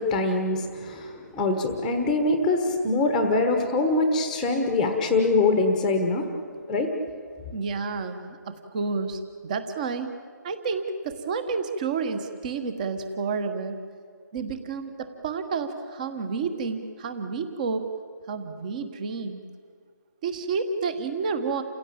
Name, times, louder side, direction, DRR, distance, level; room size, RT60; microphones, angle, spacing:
voice 1, 0.0-6.2 6.7-6.9, left 3 dB, 5° left, 4 dB, 1.2 m, -23 dB
voice 2, 7.5-10.2 10.4-13.8 14.3-17.9 18.3-19.4 20.2-21.6, right 4 dB, 25° right, 9 dB, 1.4 m, -30 dB
29.0 x 16.5 x 8.7 m, 2.1 s
hypercardioid pair, 165°, 10 cm